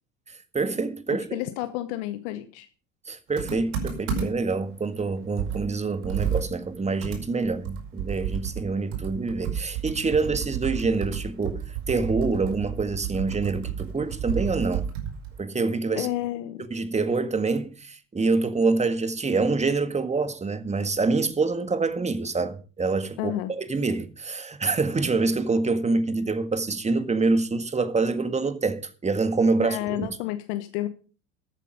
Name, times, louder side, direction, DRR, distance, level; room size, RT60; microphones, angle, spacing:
voice 1, 0.5-1.4 3.1-11.6 11.9-14.9 15.4-16.1 16.7-30.1, right 3 dB, 15° right, 1.8 m, -26 dB
voice 2, 1.3-2.7 15.9-16.6 23.2-23.5 29.6-30.9, left 14 dB, 60° left, 1.2 m, -30 dB
Computer keyboard, 3.4-4.5 5.0-5.1 5.4-8.7 8.9-15.4, right 8 dB, 65° right, 5.1 m, -31 dB
13.5 x 9.1 x 5.3 m
hypercardioid pair, 75°, 38 cm